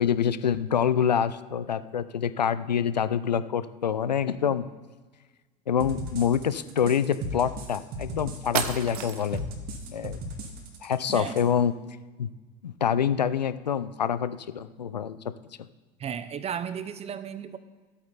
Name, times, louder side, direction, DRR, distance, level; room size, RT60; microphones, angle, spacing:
voice 1, 0.0-4.7 5.7-9.4 9.9-10.2 10.8-11.7 12.2-12.3 12.6-15.3, left 8 dB, 85° left, 14 dB, 0.5 m, -26 dB
sound 1, 5.8-11.4, right 1 dB, 45° right, 2.0 m, -37 dB
sound 2, 8.0-8.1 8.5-9.5, right 9 dB, 65° right, 0.9 m, -31 dB
voice 2, 16.0-17.6, right 8 dB, 30° right, 13 dB, 0.8 m, -34 dB
13.5 x 8.6 x 4.1 m, 1.3 s
figure-of-eight pair, 75°, 21 cm